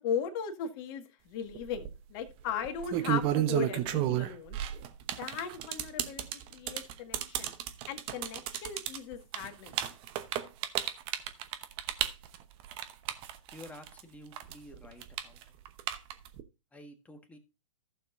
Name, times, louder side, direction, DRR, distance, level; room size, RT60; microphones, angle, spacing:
voice 1, 0.0-4.6 5.2-7.5 7.9-9.8, left 7 dB, 40° left, 6 dB, 1.7 m, -37 dB
sound 1, 1.5-1.9 2.6-14.0 14.3-16.4, right 12 dB, 30° right, 1.0 m, -32 dB
voice 2, 13.5-15.4 16.7-17.4, left 1 dB, 10° left, 5 dB, 1.6 m, -50 dB
15.0 x 7.0 x 2.6 m, 0.27 s
hypercardioid pair, 120°, 18 cm